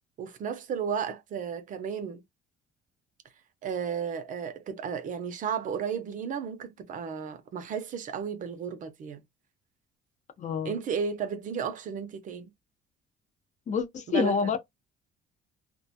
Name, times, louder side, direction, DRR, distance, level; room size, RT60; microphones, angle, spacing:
voice 1, 0.2-2.2 3.6-9.2 10.6-12.5 14.1-14.5, right 7 dB, 50° right, 0.6 m, -33 dB
voice 2, 10.4-10.8 13.7-14.6, left 5 dB, 45° left, 0.6 m, -27 dB
2.3 x 2.2 x 2.7 m
cardioid pair, 110°, 17 cm